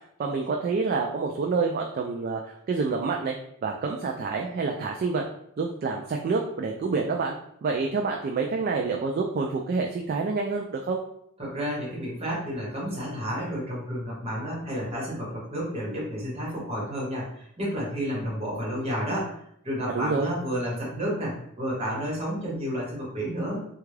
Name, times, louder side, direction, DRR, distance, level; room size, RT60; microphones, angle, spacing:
voice 1, 0.2-3.4 3.6-5.2 5.6-7.4 7.6-11.0 19.9-20.3, right 4 dB, 45° right, 1 dB, 0.3 m, -27 dB
voice 2, 11.4-19.3 19.6-23.6, equal, 30° right, -5 dB, 1.3 m, -31 dB
3.4 x 2.3 x 3.2 m, 0.72 s
head